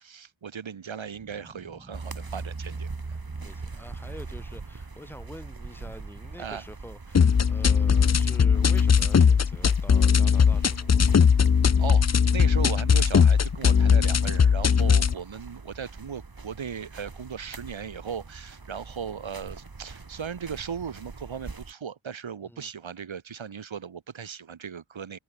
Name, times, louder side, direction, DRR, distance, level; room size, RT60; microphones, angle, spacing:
voice 1, 0.0-2.9 6.4-6.6 11.6-25.2, right 7 dB, 85° right, 1.7 m, -37 dB
sound 1, 1.0-7.0, right 1 dB, 15° right, 4.0 m, -53 dB
sound 2, 1.9-21.7, right 3 dB, 50° right, 5.4 m, -42 dB
voice 2, 3.4-11.2 22.4-22.7, equal, 5° left, 5.3 m, -46 dB
sound 3, 7.1-15.1, left 6 dB, 35° left, 0.6 m, -19 dB
open air
wide cardioid pair, 60°, 46 cm